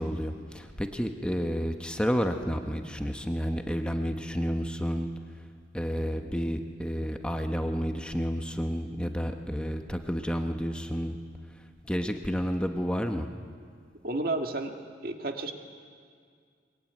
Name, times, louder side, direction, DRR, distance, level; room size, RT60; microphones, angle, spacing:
voice 1, 0.0-5.1 5.7-11.2 11.9-13.3, equal, 5° left, 5 dB, 1.0 m, -30 dB
voice 2, 14.0-14.8 15.0-15.5, right 2 dB, 55° right, 4 dB, 1.8 m, -31 dB
23.0 x 21.5 x 9.4 m, 2.1 s
head